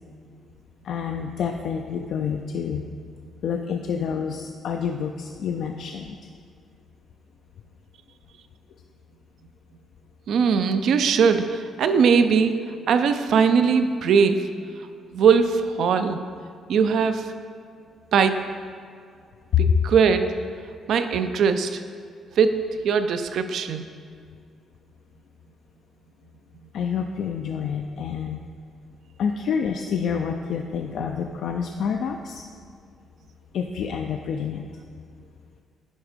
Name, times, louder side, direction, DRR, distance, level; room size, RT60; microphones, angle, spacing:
voice 1, 0.8-2.8 3.4-6.2 19.5-19.8 26.7-28.4 29.2-32.5 33.5-34.7, left 7 dB, 70° left, 4 dB, 0.4 m, -27 dB
voice 2, 10.3-12.5 12.9-14.4 15.1-16.2 16.7-17.2 18.1-18.4 19.6-20.3 20.9-21.8 22.4-22.6 22.8-23.8, right 6 dB, 70° right, 9 dB, 0.4 m, -20 dB
10.5 x 3.6 x 5.0 m, 2.2 s
cardioid pair, 90°, 0 cm